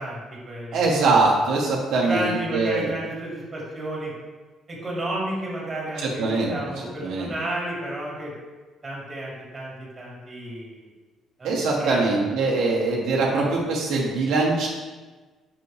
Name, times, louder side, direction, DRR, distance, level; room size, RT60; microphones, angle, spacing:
voice 1, 0.0-0.9 2.0-4.1 4.7-8.3 8.8-10.9 11.4-11.5 11.8-12.0, right 1 dB, 25° right, -4 dB, 2.4 m, -32 dB
voice 2, 0.7-2.9 6.0-6.5 7.0-7.3 11.4-14.7, right 3 dB, 75° right, -3 dB, 1.2 m, -22 dB
7.1 x 6.2 x 3.3 m, 1.3 s
cardioid pair, 145°, 0 cm